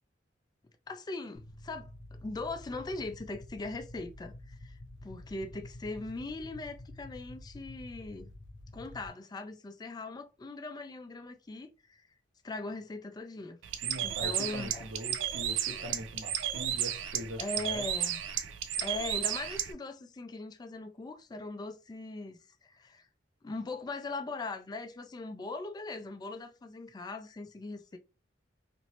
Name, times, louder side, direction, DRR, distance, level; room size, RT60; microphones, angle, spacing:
voice 1, 0.9-8.3 8.7-12.1 12.4-13.6 14.0-14.9 17.4-18.2 18.7-23.1 23.4-28.0, left 2 dB, 20° left, 0.3 m, -40 dB
sound 1, 1.3-9.1, left 1 dB, 70° left, 0.6 m, -49 dB
Bird, 13.6-19.7, right 10 dB, 90° right, 0.4 m, -33 dB
voice 2, 13.8-17.9, equal, 70° right, 0.9 m, -42 dB
3.0 x 2.5 x 2.8 m
head